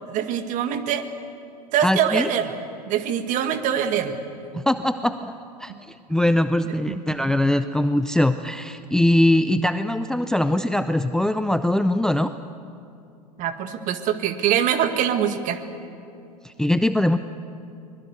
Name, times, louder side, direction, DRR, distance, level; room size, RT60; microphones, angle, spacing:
voice 1, 0.1-1.0 1.7-2.6 2.9-4.2 4.5-4.6 6.7-7.0 13.4-15.6, right 9 dB, 40° right, 9 dB, 1.8 m, -24 dB
voice 2, 1.8-2.3 4.5-12.3 16.4-17.2, left 1 dB, 5° left, 11 dB, 0.6 m, -22 dB
23.5 x 21.5 x 8.1 m, 2.6 s
figure-of-eight pair, 90°, 20 cm